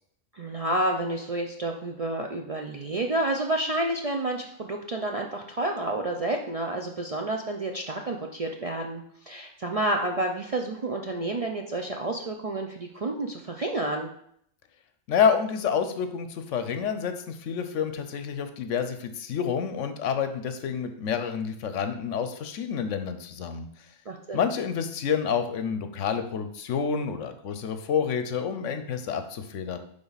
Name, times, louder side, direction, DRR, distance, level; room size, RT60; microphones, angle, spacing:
voice 1, 0.3-14.1 24.1-24.5, right 2 dB, 45° right, 2 dB, 0.4 m, -30 dB
voice 2, 15.1-23.7 24.3-29.8, left 7 dB, 75° left, 8 dB, 1.0 m, -28 dB
9.8 x 3.6 x 4.0 m, 0.68 s
omnidirectional pair, 1.3 m